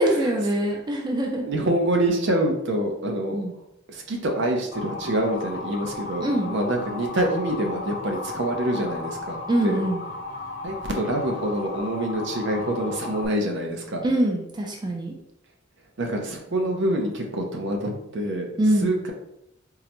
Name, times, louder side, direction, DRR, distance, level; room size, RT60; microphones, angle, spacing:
voice 1, 0.0-1.5 3.3-3.5 6.2-6.6 9.5-10.0 14.0-15.2 18.6-18.9, right 1 dB, 20° right, 0 dB, 0.4 m, -23 dB
voice 2, 1.4-3.4 3.9-9.8 10.6-14.0 16.0-19.1, right 1 dB, 65° right, 2 dB, 0.6 m, -26 dB
Motor vehicle (road) / Siren, 4.7-13.3, left 3 dB, 55° left, 0.6 m, -35 dB
3.7 x 2.1 x 2.9 m, 0.81 s
head